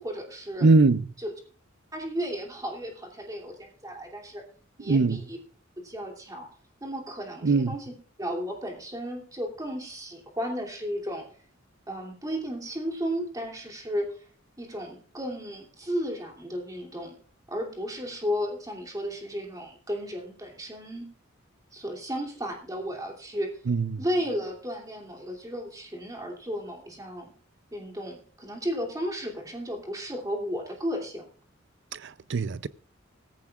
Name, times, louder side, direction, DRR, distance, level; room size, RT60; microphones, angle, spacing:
voice 1, 0.0-0.7 1.2-1.3 1.9-4.5 4.8-5.4 5.8-6.5 6.8-7.9 8.2-11.2 11.9-14.1 14.6-17.1 17.5-21.1 21.7-23.5 24.0-27.3 27.7-31.3, equal, 20° right, 2.8 m, -34 dB
voice 2, 0.6-1.0 4.9-5.2 7.4-7.8 23.7-24.0 32.0-32.7, right 3 dB, 60° right, 0.5 m, -21 dB
17.0 x 14.5 x 2.4 m
head